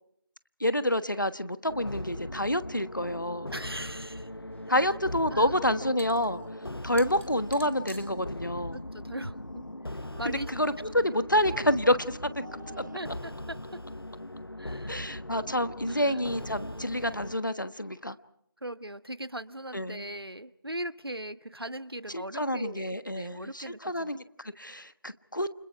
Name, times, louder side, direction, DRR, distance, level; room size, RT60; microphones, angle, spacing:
voice 1, 0.6-3.5 4.7-6.4 6.8-8.8 10.3-12.2 12.8-12.9 14.9-18.2 19.7-20.0 22.1-25.5, left 1 dB, 55° left, 12 dB, 1.3 m, -28 dB
sound 1, 1.7-17.4, left 1 dB, 85° left, 1.0 m, -40 dB
voice 2, 3.5-4.3 4.7-5.0 5.3-5.6 6.3-6.6 8.7-10.5 12.9-13.8 14.6-15.1 15.9-16.2 18.6-24.1, right 1 dB, 90° right, 12 dB, 1.4 m, -40 dB
sound 2, 4.3-10.2, equal, 30° left, 1.9 m, -53 dB
sound 3, 5.0-5.1 6.3-6.4 6.8-7.0 7.3-7.5 9.8-11.1 12.1-13.0, right 1 dB, 50° right, 1.6 m, -49 dB
29.5 x 27.0 x 4.6 m, 0.71 s
figure-of-eight pair, 180°, 12 cm